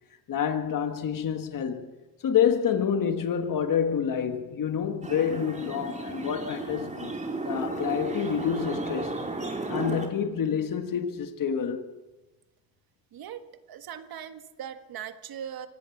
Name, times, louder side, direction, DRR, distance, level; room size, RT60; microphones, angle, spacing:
voice 1, 0.3-1.9 2.2-7.1 7.5-9.2 9.7-11.9, left 8 dB, 60° left, 1.7 m, -28 dB
sound 1, 5.0-10.1, right 2 dB, 20° right, 3.7 m, -34 dB
voice 2, 13.1-13.4 13.7-15.7, right 9 dB, 70° right, 1.7 m, -39 dB
24.5 x 17.5 x 7.3 m
cardioid pair, 100°, 37 cm